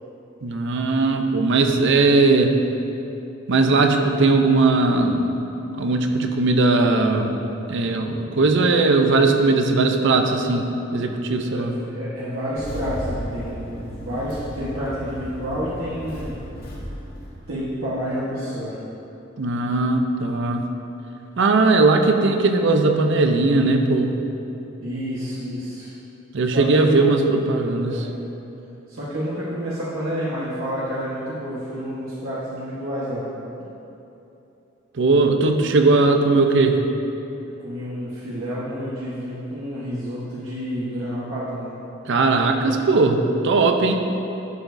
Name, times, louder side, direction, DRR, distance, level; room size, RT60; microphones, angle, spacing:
voice 1, 0.4-2.6 3.5-5.3 5.7-7.4 7.7-11.7 19.4-20.7 21.4-24.2 26.3-27.9 34.9-36.8 42.0-43.9, right 3 dB, 65° right, 5 dB, 0.6 m, -19 dB
voice 2, 11.4-16.4 17.5-18.8 24.8-25.9 26.5-27.1 27.8-28.1 28.9-33.3 37.6-41.8, equal, 85° right, -9 dB, 1.3 m, -29 dB
Engine starting, 12.6-18.1, equal, 50° left, 1.4 m, -35 dB
11.0 x 7.0 x 2.6 m, 2.9 s
head